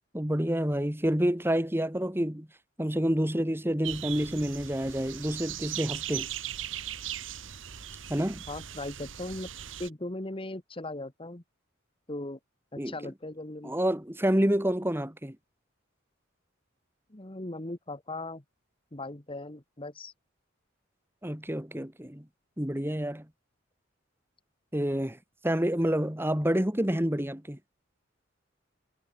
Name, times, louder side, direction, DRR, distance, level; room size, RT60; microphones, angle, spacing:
voice 1, 0.1-2.5 2.8-6.3 8.1-8.4 12.8-12.9 13.6-15.4 21.2-22.2 22.6-23.3 24.7-25.2 25.4-27.6, equal, 10° right, 2.2 m, -28 dB
sound 1, 3.8-9.9, right 11 dB, 70° right, 1.5 m, -39 dB
voice 2, 8.5-9.5 9.8-11.4 12.1-12.4 12.7-13.7 17.1-18.4 18.9-20.1, left 2 dB, 25° left, 1.6 m, -38 dB
head